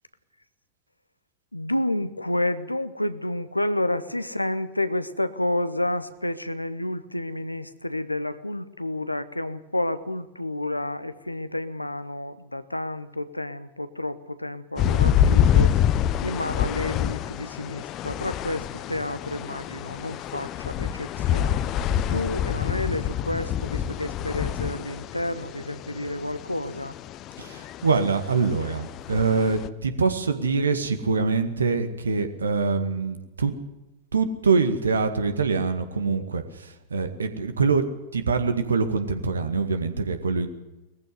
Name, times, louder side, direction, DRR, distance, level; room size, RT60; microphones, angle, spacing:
voice 1, 1.5-15.7 16.2-21.6 22.1-27.0, left 1 dB, 85° left, 13 dB, 1.1 m, -30 dB
sound 1, 14.8-29.7, left 9 dB, 35° left, 0.9 m, -26 dB
voice 2, 27.4-33.5 34.1-40.5, right 4 dB, 70° right, 9 dB, 1.9 m, -24 dB
20.5 x 15.0 x 9.5 m, 1.0 s
figure-of-eight pair, 90°, 0 cm